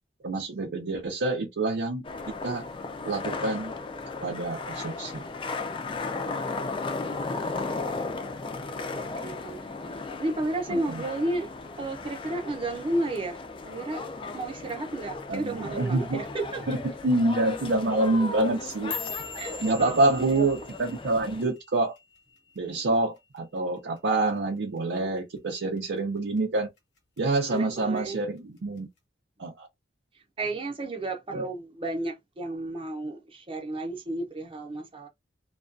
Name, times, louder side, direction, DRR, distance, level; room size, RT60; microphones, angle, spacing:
voice 1, 0.2-2.0 2.4-2.6 3.0-3.7 4.2-5.2 10.7-11.0 15.3-16.2 16.7-18.9 19.6-21.9 22.6-26.7 27.2-28.9 29.4-29.7 31.3-31.5, right 2 dB, 85° right, 0.6 m, -27 dB
sound 1, 2.0-21.4, left 3 dB, 30° left, 0.3 m, -36 dB
voice 2, 8.9-11.5 11.8-14.1 14.3-17.0 19.4-20.5 27.5-28.2 30.4-35.1, right 2 dB, 30° right, 0.7 m, -33 dB
sound 2, 18.5-22.9 23.2-23.6 24.0-24.4 24.8-25.0 25.6-26.0 26.4-27.2 27.6-28.0 28.8-28.9, left 6 dB, 80° left, 0.9 m, -41 dB
2.3 x 2.3 x 2.5 m
head